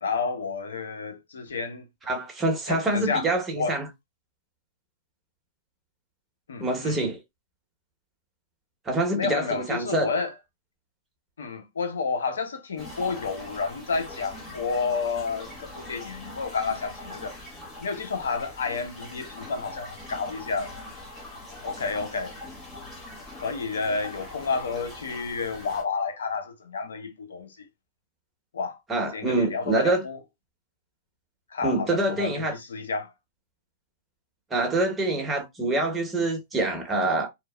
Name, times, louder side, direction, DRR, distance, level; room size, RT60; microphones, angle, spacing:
voice 1, 0.0-1.8 2.7-3.8 6.5-7.0 9.1-10.3 11.4-17.4 17.8-20.7 21.6-22.3 23.3-27.7 28.5-28.8 29.1-30.2 31.5-33.1, left 4 dB, 90° left, 0.6 m, -30 dB
voice 2, 2.1-3.9 6.6-7.2 8.8-10.1 28.9-30.0 31.6-32.6 34.5-37.3, right 2 dB, 15° right, 1.0 m, -26 dB
sound 1, 12.8-25.8, left 2 dB, 15° left, 1.3 m, -42 dB
2.8 x 2.1 x 2.2 m
hypercardioid pair, 120°, 0 cm